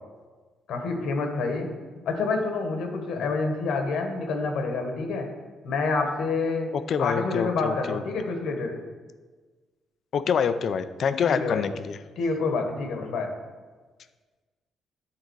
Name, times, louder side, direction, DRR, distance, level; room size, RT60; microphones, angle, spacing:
voice 1, 0.7-1.7 2.0-5.3 5.6-6.7 7.0-8.8 11.2-11.6 12.2-13.3, left 3 dB, 80° left, 3 dB, 1.3 m, -27 dB
voice 2, 6.7-8.0 10.1-12.0, left 7 dB, 60° left, 12 dB, 0.5 m, -26 dB
9.8 x 3.9 x 4.6 m, 1.4 s
cardioid pair, 90°, 0 cm